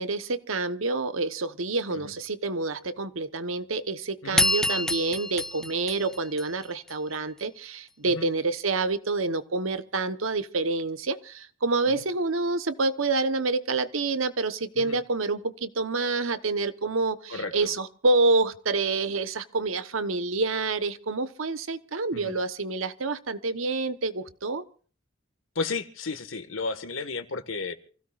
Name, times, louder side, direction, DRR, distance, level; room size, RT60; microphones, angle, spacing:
voice 1, 0.0-24.6, right 3 dB, 85° right, 1.1 m, -28 dB
sound 1, 4.4-6.9, left 1 dB, 5° left, 0.6 m, -27 dB
voice 2, 17.3-17.7 22.1-22.4 25.5-27.7, left 3 dB, 80° left, 1.7 m, -33 dB
27.5 x 16.5 x 2.5 m
head